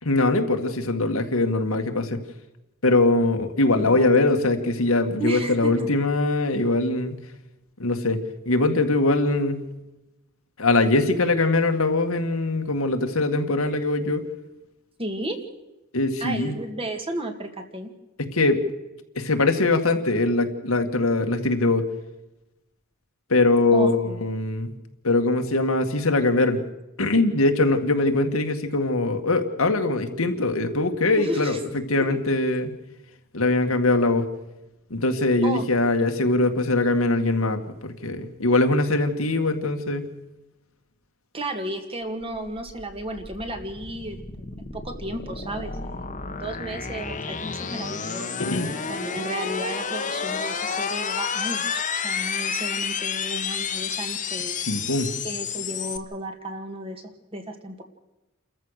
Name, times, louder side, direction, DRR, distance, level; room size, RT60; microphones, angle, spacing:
voice 1, 0.0-2.2 2.8-7.2 7.8-9.6 10.6-14.2 15.9-16.6 18.2-18.6 19.2-21.9 23.3-24.7 25.0-26.6 27.0-31.6 31.9-32.7 33.3-34.3 34.9-40.1 48.4-48.7 54.6-55.1, left 2 dB, 80° left, 5 dB, 1.9 m, -22 dB
voice 2, 3.7-4.2 5.2-5.9 15.0-15.4 16.2-17.9 23.7-24.3 31.2-31.6 32.1-32.2 35.4-35.6 41.3-48.4 48.9-54.6 55.2-57.0 57.3-57.8, right 1 dB, 25° right, 5 dB, 2.2 m, -33 dB
sound 1, 42.2-56.0, left 6 dB, 35° left, 1.4 m, -30 dB
29.0 x 14.0 x 6.6 m, 0.99 s
head